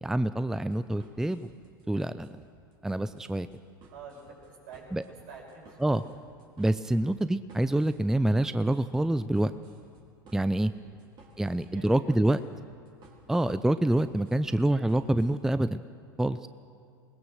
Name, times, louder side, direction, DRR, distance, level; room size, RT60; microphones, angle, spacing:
voice 1, 0.0-1.5 1.9-2.3 2.8-3.5 4.9-5.0 5.8-6.0 6.6-9.5 10.3-10.7 11.4-12.4 13.3-15.8 16.2-16.5, right 1 dB, 5° right, 13 dB, 0.5 m, -26 dB
sound 1, 0.5-15.3, right 3 dB, 45° right, 4.4 m, -57 dB
voice 2, 3.9-6.0 10.7-11.0 11.3-12.0 12.3-12.4, right 4 dB, 70° right, 0 dB, 6.4 m, -49 dB
21.5 x 19.5 x 6.4 m, 2.3 s
hypercardioid pair, 85°, 11 cm